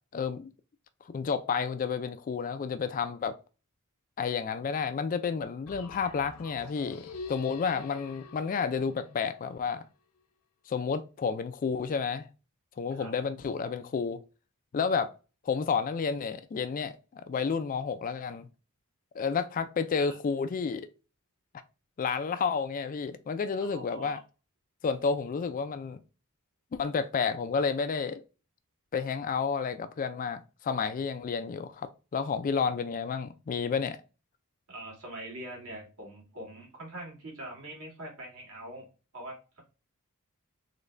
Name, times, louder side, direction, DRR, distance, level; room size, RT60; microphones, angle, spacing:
voice 1, 0.1-0.5 1.1-3.4 4.2-9.8 10.7-12.3 12.8-14.2 14.7-15.1 15.4-18.5 19.1-20.9 22.0-24.2 24.8-26.0 26.7-28.2 28.9-34.0, left 5 dB, 40° left, 0.3 m, -31 dB
sound 1, 5.7-9.6, left 4 dB, 85° left, 0.6 m, -46 dB
voice 2, 23.6-24.2 34.7-38.9 39.1-39.6, right 1 dB, 85° right, 1.9 m, -43 dB
3.8 x 2.2 x 3.2 m
head